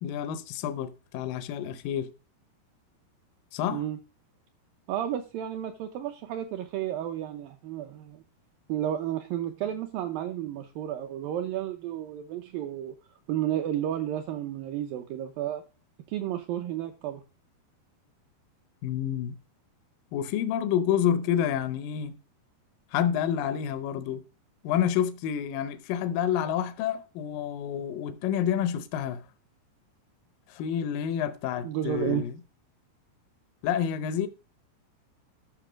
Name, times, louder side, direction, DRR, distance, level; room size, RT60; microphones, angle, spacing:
voice 1, 0.0-2.1 3.5-3.8 18.8-19.3 20.1-22.2 22.9-24.2 24.6-29.2 30.5-32.3 33.6-34.3, left 9 dB, 80° left, 2.0 m, -28 dB
voice 2, 4.9-8.2 8.7-13.0 13.3-15.6 16.1-17.2 31.6-32.3, right 11 dB, 75° right, 2.2 m, -32 dB
12.0 x 5.8 x 5.0 m
omnidirectional pair, 4.8 m